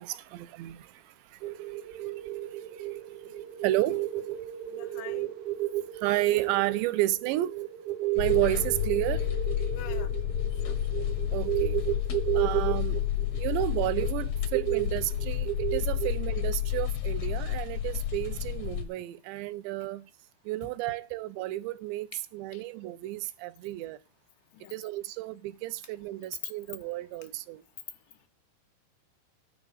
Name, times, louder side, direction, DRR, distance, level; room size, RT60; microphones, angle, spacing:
voice 1, 0.0-4.5 5.8-7.6 8.2-9.3 11.3-11.8 12.3-13.0 13.4-20.1 20.4-22.1 22.3-24.0 24.7-27.6, right 16 dB, 85° right, 2.9 m, -32 dB
sound 1, 1.4-16.8, right 15 dB, 70° right, 1.9 m, -33 dB
voice 2, 4.7-5.3 9.7-10.1 10.7-10.8 22.5-22.7 24.5-24.7, left 13 dB, 85° left, 3.3 m, -45 dB
sound 2, 8.2-18.9, left 11 dB, 70° left, 1.6 m, -30 dB
10.5 x 4.8 x 7.9 m
omnidirectional pair, 5.1 m